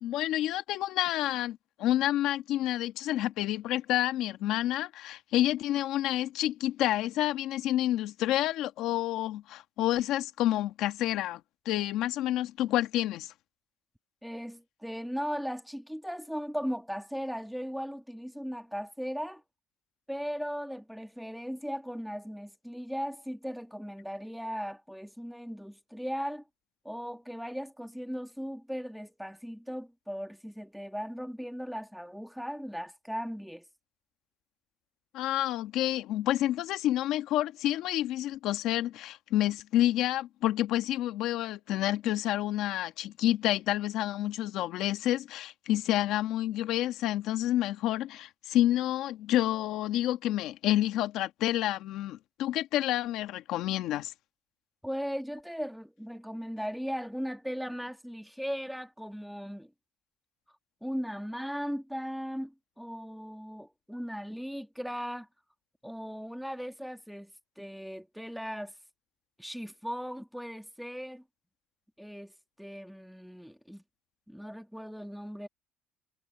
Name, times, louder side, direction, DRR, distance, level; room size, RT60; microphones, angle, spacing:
voice 1, 0.0-11.4 11.6-13.3 35.1-54.1, left 13 dB, 70° left, 1.6 m, -29 dB
voice 2, 14.2-19.4 20.1-26.4 26.8-33.6 54.8-59.7 60.8-65.3 65.8-67.3 67.6-68.7 69.4-71.2 72.0-72.3 72.6-73.8 74.3-75.5, equal, ahead, 1.7 m, -37 dB
cardioid pair, 150°, 0 cm